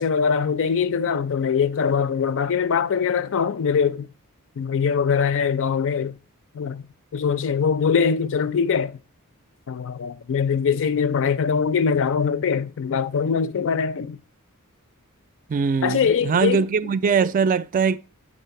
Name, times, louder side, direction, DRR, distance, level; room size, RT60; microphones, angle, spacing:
voice 1, 0.0-4.1 4.6-6.2 6.5-9.0 9.7-14.2 15.8-16.7, left 6 dB, 60° left, 0.4 m, -22 dB
voice 2, 15.5-18.0, right 5 dB, 35° right, 0.3 m, -21 dB
8.9 x 3.2 x 5.7 m
head